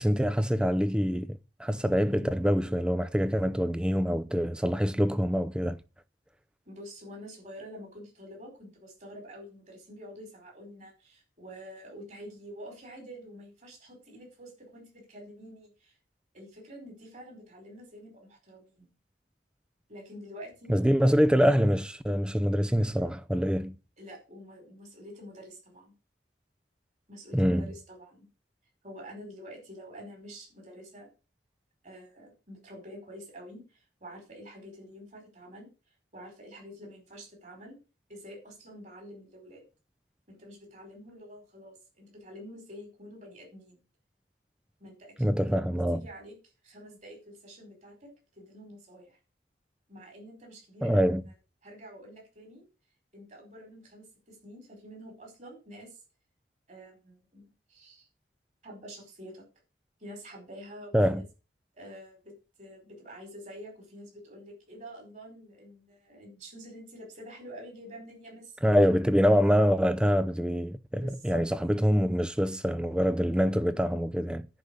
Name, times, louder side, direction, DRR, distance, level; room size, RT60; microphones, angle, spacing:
voice 1, 0.0-5.8 20.7-23.8 27.3-27.7 45.2-46.0 50.8-51.2 60.9-61.2 68.6-74.5, equal, 5° right, 0.6 m, -25 dB
voice 2, 6.7-16.0 16.3-18.9 19.9-20.7 24.0-25.9 27.1-28.3 28.8-31.1 31.8-35.7 36.1-37.8 38.1-39.6 40.3-43.8 44.8-45.6 45.9-46.4 46.6-48.1 48.4-49.2 49.9-51.1 51.6-52.7 53.1-56.0 56.7-58.1 58.6-59.4 60.0-61.2 61.7-68.8 71.0-71.4, equal, 40° right, 5.1 m, -47 dB
10.5 x 5.2 x 8.4 m
head